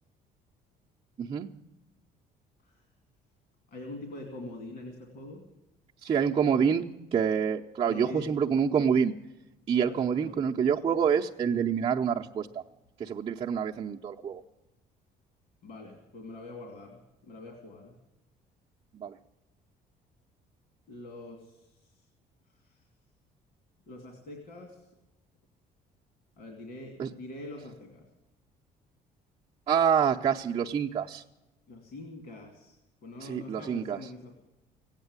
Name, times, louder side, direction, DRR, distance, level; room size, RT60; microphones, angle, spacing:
voice 1, 1.2-1.5 6.0-6.8 7.1-9.1 9.7-12.6 13.0-14.4 18.9-19.1 27.0-27.1 29.7-31.2 33.2-34.0, right 7 dB, 35° right, -3 dB, 0.7 m, -27 dB
voice 2, 3.7-5.4 7.8-8.3 9.8-10.6 15.6-17.0 17.3-17.9 20.9-22.1 22.5-22.8 23.9-24.9 26.4-28.0 31.7-34.3, left 2 dB, 65° left, 2 dB, 2.7 m, -44 dB
16.0 x 9.0 x 9.6 m, 0.99 s
cardioid pair, 110°, 17 cm